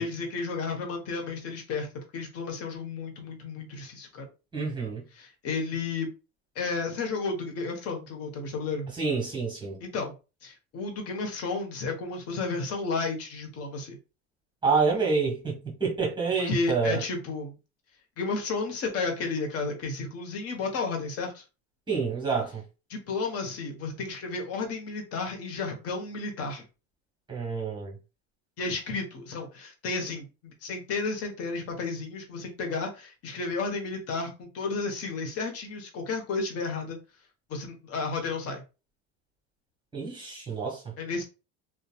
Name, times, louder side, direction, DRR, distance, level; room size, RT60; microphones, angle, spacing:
voice 1, 0.0-1.9 2.1-4.3 5.1-6.1 6.5-8.9 9.8-10.1 10.4-14.0 16.4-17.6 18.2-21.4 22.9-26.6 28.6-37.0 37.5-38.6 41.0-41.2, left 4 dB, 45° left, 1.0 m, -32 dB
voice 2, 4.5-5.0 9.0-9.8 14.6-17.0 21.9-22.6 27.3-27.9 39.9-40.9, right 4 dB, 15° right, 1.4 m, -28 dB
2.7 x 2.3 x 2.3 m
supercardioid pair, 105°, 34 cm